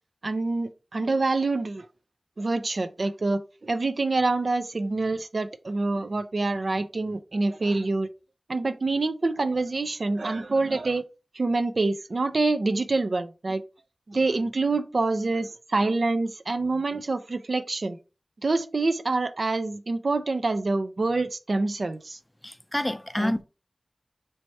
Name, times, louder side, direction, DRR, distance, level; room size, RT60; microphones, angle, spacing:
voice 1, 0.2-1.9 2.4-8.1 8.5-11.0 11.3-13.6 14.1-18.0 18.4-22.2 23.2-23.3, right 3 dB, 75° right, 0.4 m, -26 dB
voice 2, 22.4-23.4, left 1 dB, 20° left, 0.4 m, -28 dB
3.2 x 2.7 x 4.4 m
wide cardioid pair, 45°, 0 cm